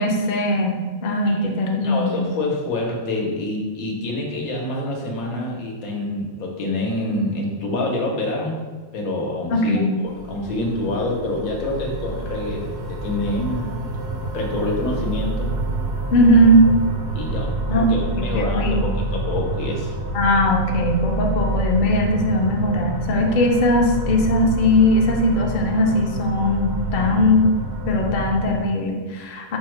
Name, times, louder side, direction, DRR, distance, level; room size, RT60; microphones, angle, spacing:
voice 1, 0.0-2.3 9.5-9.9 16.1-16.7 17.7-17.9 18.2-19.0 20.1-27.5 27.9-29.6, left 1 dB, 55° left, 1 dB, 0.6 m, -19 dB
voice 2, 1.8-8.6 8.9-13.8 14.3-15.5 17.1-19.9, left 2 dB, 85° left, 0 dB, 1.3 m, -26 dB
sound 1, 10.0-28.7, right 2 dB, 60° right, 0.8 m, -28 dB
5.5 x 2.1 x 4.4 m, 1.4 s
omnidirectional pair, 1.5 m